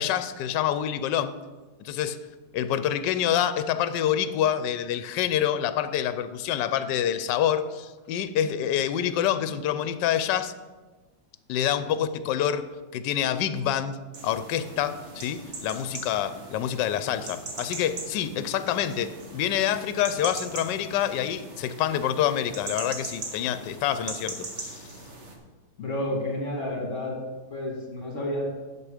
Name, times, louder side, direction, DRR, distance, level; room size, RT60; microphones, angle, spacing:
voice 1, 0.0-1.3 1.8-2.2 2.5-10.5 11.5-12.7 12.9-14.0 14.2-24.9, left 10 dB, 80° left, 12 dB, 1.2 m, -27 dB
sound 1, 14.1-25.4, right 2 dB, 45° right, 1.4 m, -40 dB
voice 2, 25.8-27.2 27.5-28.5, left 1 dB, 45° left, -1 dB, 2.5 m, -30 dB
9.9 x 7.2 x 4.9 m, 1.3 s
omnidirectional pair, 1.9 m